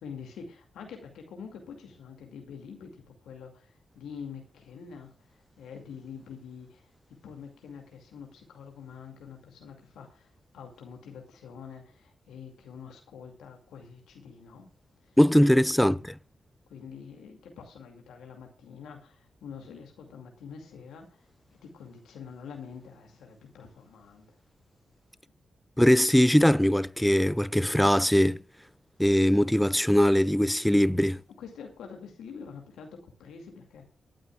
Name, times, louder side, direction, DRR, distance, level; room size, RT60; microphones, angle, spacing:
voice 1, 0.0-14.7 15.0-15.2 15.7-15.9 16.7-24.4 31.4-33.9, left 6 dB, 85° left, 2.3 m, -46 dB
voice 2, 15.2-16.0 25.8-28.4 29.0-31.2, equal, 5° left, 0.5 m, -21 dB
25.0 x 9.1 x 2.4 m
supercardioid pair, 40°, 0 cm